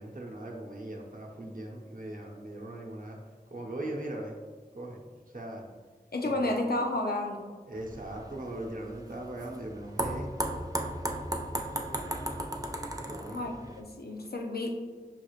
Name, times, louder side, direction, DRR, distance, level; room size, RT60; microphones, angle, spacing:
voice 1, 0.0-3.2 3.5-4.4 4.7-5.0 5.3-5.7 6.2-6.6 7.7-10.3 13.0-13.5, right 1 dB, 60° right, -1 dB, 0.7 m, -39 dB
voice 2, 6.1-7.4 13.3-14.9, left 1 dB, 80° left, 2 dB, 0.5 m, -31 dB
sound 1, 7.8-13.8, right 1 dB, 20° right, 0.4 m, -35 dB
5.6 x 3.1 x 2.4 m, 1.5 s
wide cardioid pair, 40°, 16 cm